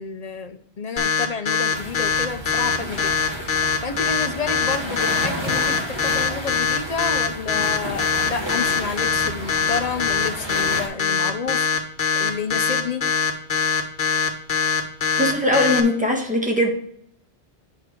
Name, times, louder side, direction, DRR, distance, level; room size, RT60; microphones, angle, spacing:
voice 1, 0.0-3.1 3.8-11.7 12.2-13.1, left 5 dB, 45° left, 9 dB, 0.6 m, -30 dB
sound 1, 1.0-15.8, left 6 dB, 65° left, 1.2 m, -22 dB
sound 2, 1.7-10.9, right 1 dB, 25° right, 1.6 m, -32 dB
voice 2, 15.2-16.7, left 1 dB, 10° right, 1 dB, 1.3 m, -20 dB
8.4 x 4.9 x 4.5 m, 0.71 s
omnidirectional pair, 1.0 m